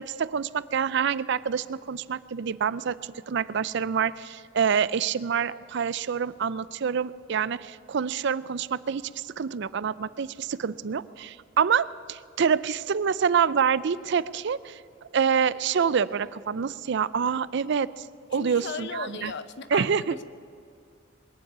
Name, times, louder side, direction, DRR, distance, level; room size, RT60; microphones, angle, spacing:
voice 1, 0.0-14.8 15.1-18.1 18.3-19.3 19.7-20.1, right 7 dB, 60° right, 17 dB, 0.4 m, -27 dB
voice 2, 18.3-20.2, left 4 dB, 60° left, 12 dB, 0.8 m, -37 dB
21.0 x 7.3 x 9.4 m, 2.2 s
head